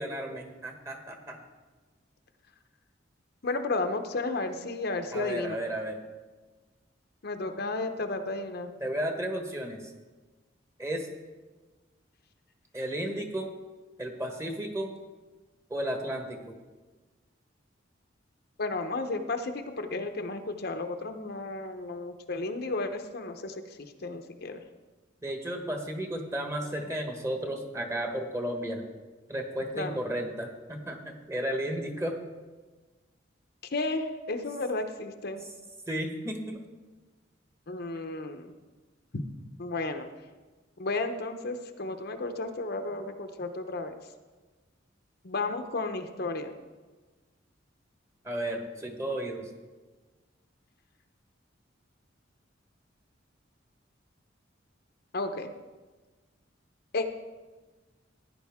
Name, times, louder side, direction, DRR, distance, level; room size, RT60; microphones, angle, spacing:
voice 1, 0.0-1.4 5.1-6.0 8.8-9.8 10.8-11.1 12.7-13.5 14.0-14.9 15.7-16.5 25.2-28.9 29.3-32.2 35.9-36.6 48.2-49.4, right 1 dB, 15° right, 3 dB, 1.3 m, -33 dB
voice 2, 3.4-5.6 7.2-8.7 18.6-24.6 29.7-30.0 33.7-35.4 37.7-38.5 39.1-39.2 39.6-40.1 40.8-44.0 45.2-46.5 55.1-55.5 56.9-57.1, left 3 dB, 55° left, 6 dB, 0.8 m, -33 dB
15.5 x 9.9 x 3.6 m, 1.3 s
head